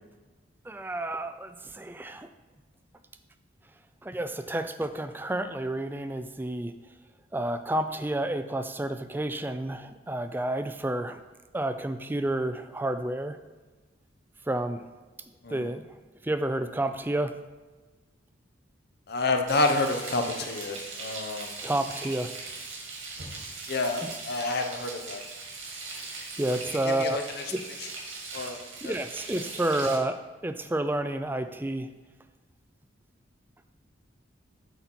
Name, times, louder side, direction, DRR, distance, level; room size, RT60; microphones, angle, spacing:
voice 1, 0.7-2.3 4.0-6.7 7.3-11.2 11.5-13.4 14.5-14.8 15.5-15.9 16.2-17.4 21.6-22.3 26.4-27.2 27.5-27.6 28.8-31.9, right 1 dB, 10° right, 9 dB, 0.3 m, -30 dB
voice 2, 19.1-21.5 23.7-25.2 27.0-27.2 28.3-28.6 28.8-28.9, left 2 dB, 55° left, 4 dB, 0.8 m, -28 dB
Frying (food), 19.5-30.0, right 3 dB, 85° right, 2.3 m, -40 dB
8.0 x 4.1 x 6.0 m, 1.3 s
head